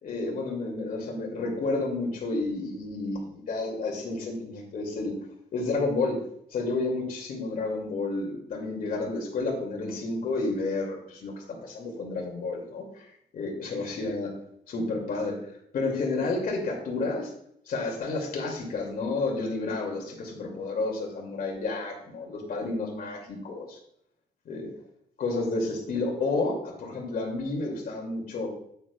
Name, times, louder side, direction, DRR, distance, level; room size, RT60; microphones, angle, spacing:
voice 1, 0.0-5.1 5.5-6.2 6.5-13.1 13.3-14.3 14.7-15.4 15.7-17.3 17.7-23.8 24.4-24.7 25.2-28.5, left 3 dB, 55° left, -1 dB, 2.5 m, -30 dB
9.1 x 9.1 x 2.4 m, 0.72 s
wide cardioid pair, 175°, 17 cm